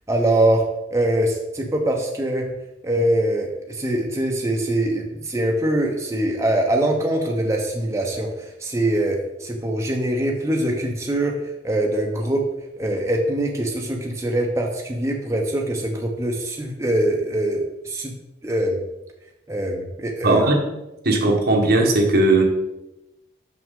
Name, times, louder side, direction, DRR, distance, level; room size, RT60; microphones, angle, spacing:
voice 1, 0.1-0.6 0.9-2.5 2.8-11.3 11.6-12.4 12.8-18.1 18.4-18.8 19.5-20.5, right 1 dB, 15° right, 0 dB, 0.7 m, -23 dB
voice 2, 20.2-20.6 21.0-22.4, right 2 dB, 55° right, 1 dB, 1.2 m, -17 dB
6.2 x 5.9 x 3.7 m, 0.95 s
head